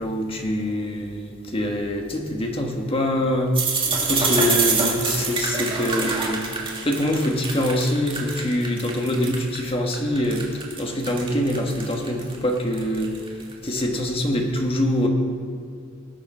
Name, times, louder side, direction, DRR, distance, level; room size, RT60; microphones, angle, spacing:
voice 1, 0.0-3.5 4.0-13.1 13.6-15.1, left 1 dB, 30° left, 2 dB, 1.4 m, -24 dB
sound 1, 3.5-9.6 9.9-13.8, right 4 dB, 25° right, 2.0 m, -25 dB
19.5 x 6.8 x 5.5 m, 2.3 s
head